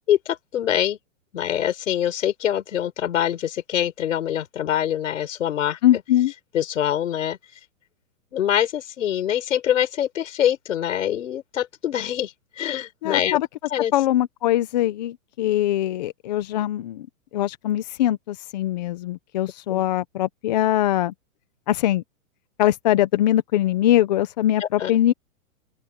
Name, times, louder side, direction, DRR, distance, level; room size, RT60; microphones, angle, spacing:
voice 1, 0.1-1.0 1.3-5.8 6.5-7.4 8.3-13.4 13.7-13.9 19.7-19.8 24.6-24.9, left 10 dB, 65° left, 5.3 m, -24 dB
voice 2, 5.8-6.3 13.0-13.5 13.9-17.1 17.3-21.1 21.7-22.0 22.6-25.1, left 13 dB, 30° left, 1.0 m, -22 dB
open air
hypercardioid pair, 175°, 41 cm